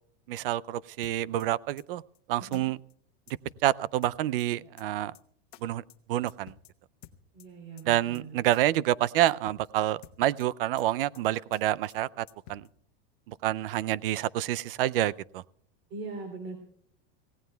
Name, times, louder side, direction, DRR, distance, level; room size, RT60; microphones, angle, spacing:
voice 1, 0.3-2.0 2.3-2.8 3.6-5.1 5.6-5.8 6.1-6.5 7.9-12.6 13.3-15.4, right 14 dB, 70° right, 0.5 m, -28 dB
sound 1, 1.0-1.5 1.8-1.9 2.1-2.2 2.5-2.6 2.9-3.0 3.3-3.7 4.0-4.5 4.8-4.9 5.1-5.2 5.5-5.6 5.9-6.0 6.3-6.7 7.0-7.5 7.8-7.9 8.1-8.2 8.5-8.6 8.9-9.0 9.3-9.7 10.0-10.5 10.8-10.9 11.1-11.2 11.5-11.6 11.9-12.0 12.3-12.7, left 13 dB, 55° left, 1.1 m, -51 dB
voice 2, 7.3-8.4 15.9-16.6, right 3 dB, 40° right, 3.0 m, -40 dB
26.5 x 16.5 x 2.3 m
supercardioid pair, 155°, 29 cm